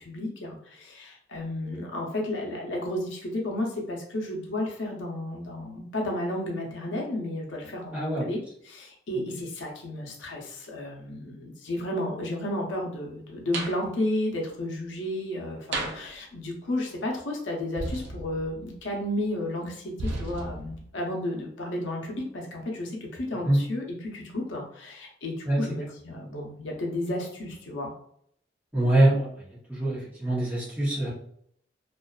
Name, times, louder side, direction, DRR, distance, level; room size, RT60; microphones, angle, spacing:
voice 1, 0.0-8.4 8.7-27.9, left 1 dB, 85° left, -1 dB, 0.7 m, -32 dB
voice 2, 7.9-8.3 23.4-23.6 25.5-25.6 28.7-29.3 29.7-31.1, right 1 dB, 10° right, -7 dB, 0.7 m, -23 dB
sound 1, 13.5-13.8 15.7-16.1 17.8-18.8 20.0-20.9, right 2 dB, 70° right, 0.3 m, -34 dB
2.5 x 2.3 x 2.2 m, 0.67 s
head